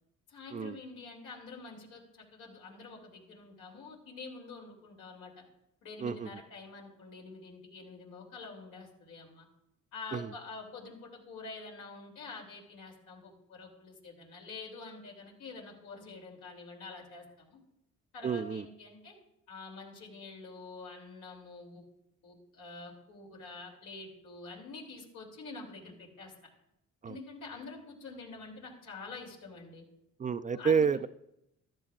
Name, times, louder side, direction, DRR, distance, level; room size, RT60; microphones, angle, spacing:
voice 1, 0.3-5.4 5.8-9.5 9.9-17.6 18.1-19.2 19.5-21.8 22.2-26.3 27.1-29.8 30.5-30.9, left 3 dB, 85° left, -1 dB, 3.1 m, -47 dB
voice 2, 18.2-18.6 27.0-27.1 30.2-31.1, right 6 dB, 25° right, 11 dB, 0.4 m, -29 dB
15.0 x 12.5 x 2.5 m, 0.83 s
cardioid pair, 90°, 30 cm